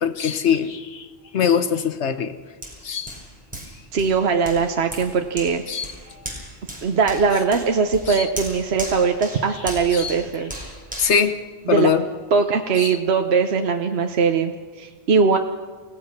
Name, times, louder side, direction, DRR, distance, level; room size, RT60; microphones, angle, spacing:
voice 1, 0.0-1.1 1.3-2.3 2.8-3.1 5.7-5.9 8.1-8.3 9.9-10.1 11.0-11.4 11.7-12.0 12.8-13.0, left 7 dB, 80° left, 10 dB, 1.4 m, -22 dB
Hands, 2.6-12.1 12.6-12.7, equal, 5° right, 5.4 m, -38 dB
voice 2, 3.9-5.6 6.8-10.6 11.7-11.9 12.3-14.5 14.8-15.4, right 5 dB, 70° right, 5 dB, 1.2 m, -20 dB
29.5 x 17.0 x 6.1 m, 1.5 s
omnidirectional pair, 1.1 m